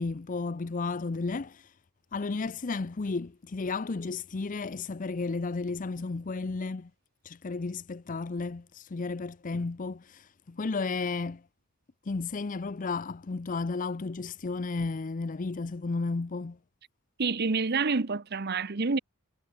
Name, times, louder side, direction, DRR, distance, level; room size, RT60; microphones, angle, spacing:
voice 1, 0.0-1.7 2.1-6.9 7.2-11.4 12.0-16.6, left 3 dB, 40° left, 0.5 m, -33 dB
voice 2, 17.2-19.0, right 4 dB, 50° right, 0.9 m, -28 dB
head